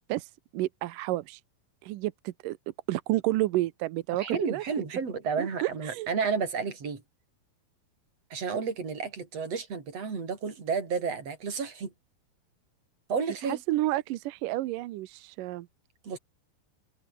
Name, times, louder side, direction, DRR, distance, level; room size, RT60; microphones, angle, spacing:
voice 1, 0.1-1.4 1.8-2.6 2.9-4.6 5.4-6.1 13.4-15.7, right 16 dB, 75° right, 2.1 m, -30 dB
voice 2, 4.1-7.0 8.3-11.9 13.1-13.6 16.0-16.2, right 5 dB, 40° right, 5.6 m, -31 dB
omnidirectional pair, 4.5 m